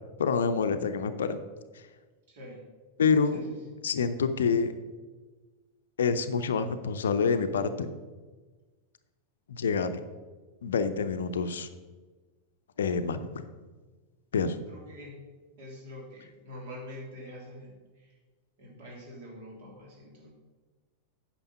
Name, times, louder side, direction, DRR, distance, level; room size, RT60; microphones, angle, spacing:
voice 1, 0.2-1.5 3.0-3.4 3.8-4.7 6.0-7.9 9.5-10.0 10.6-11.7 12.8-13.4 14.3-14.6, left 5 dB, 65° left, 10 dB, 0.6 m, -27 dB
voice 2, 2.3-2.6 3.3-3.8 14.7-15.2 15.6-18.2 18.6-20.3, left 1 dB, 55° right, -2 dB, 3.3 m, -45 dB
9.0 x 6.0 x 5.6 m, 1.3 s
figure-of-eight pair, 90°, 0 cm